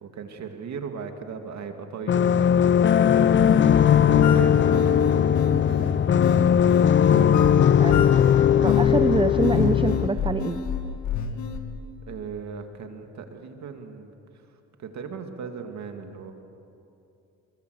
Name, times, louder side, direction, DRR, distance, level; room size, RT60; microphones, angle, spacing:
voice 1, 0.0-2.7 3.1-6.0 12.0-14.1 14.8-16.3, right 5 dB, 65° right, 5 dB, 2.4 m, -38 dB
sound 1, 2.1-10.1, left 9 dB, 40° left, 0.6 m, -19 dB
sound 2, 3.1-11.6, left 6 dB, 70° left, 2.1 m, -29 dB
voice 2, 8.6-10.6, right 4 dB, 15° right, 10 dB, 0.8 m, -25 dB
24.5 x 21.5 x 8.0 m, 2.8 s
cardioid pair, 90°, 30 cm